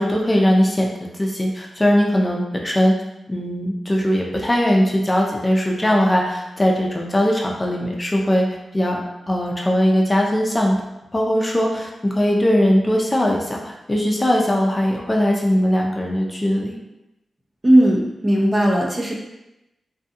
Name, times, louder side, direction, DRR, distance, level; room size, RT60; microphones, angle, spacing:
voice 1, 0.0-2.9 3.3-8.5 8.7-10.8 11.1-16.8, equal, 25° left, -1 dB, 0.5 m, -20 dB
voice 2, 17.6-19.1, right 1 dB, 30° right, -1 dB, 0.6 m, -16 dB
2.6 x 2.2 x 2.7 m, 0.92 s
supercardioid pair, 45°, 0 cm